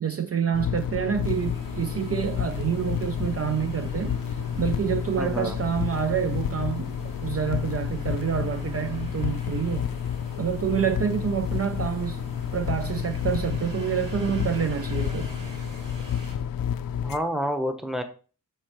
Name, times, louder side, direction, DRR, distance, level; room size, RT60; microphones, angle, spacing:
voice 1, 0.0-7.0 7.2-9.9 10.4-12.2 12.5-15.3, right 8 dB, 45° right, 0.4 m, -27 dB
sound 1, 0.5-17.2, left 9 dB, 85° left, 0.5 m, -30 dB
sound 2, 1.2-16.3, right 2 dB, 70° right, 4.4 m, -43 dB
voice 2, 5.2-5.6 17.0-18.0, equal, ahead, 0.9 m, -28 dB
12.0 x 4.3 x 3.0 m
wide cardioid pair, 145°, 33 cm